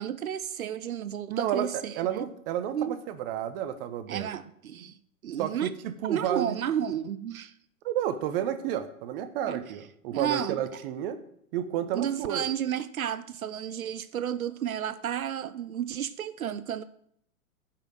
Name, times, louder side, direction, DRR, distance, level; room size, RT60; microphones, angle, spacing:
voice 1, 0.0-2.2 2.7-3.0 4.1-4.9 5.2-5.7 6.0-7.5 9.5-9.6 10.1-10.7 11.9-16.8, right 9 dB, 75° right, 0.6 m, -32 dB
voice 2, 1.3-4.3 5.4-6.6 7.8-11.2 11.5-12.5, right 10 dB, 40° right, 1.1 m, -31 dB
8.9 x 5.9 x 7.6 m
figure-of-eight pair, 105°, 43 cm